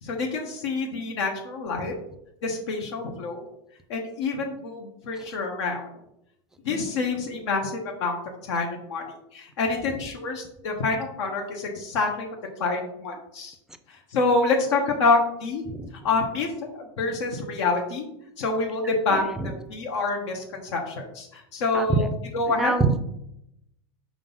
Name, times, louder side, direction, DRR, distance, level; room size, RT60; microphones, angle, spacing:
voice 1, 0.0-1.9 2.4-3.4 3.9-5.9 6.6-8.2 8.5-12.3 12.6-13.6 13.9-15.6 16.0-18.1 18.4-22.1 22.3-22.7, left 3 dB, 80° left, 1 dB, 1.2 m, -27 dB
voice 2, 19.1-19.6 21.7-22.1 22.5-23.0, right 3 dB, 5° right, 9 dB, 0.5 m, -26 dB
4.8 x 3.8 x 5.5 m, 0.79 s
supercardioid pair, 130°, 15 cm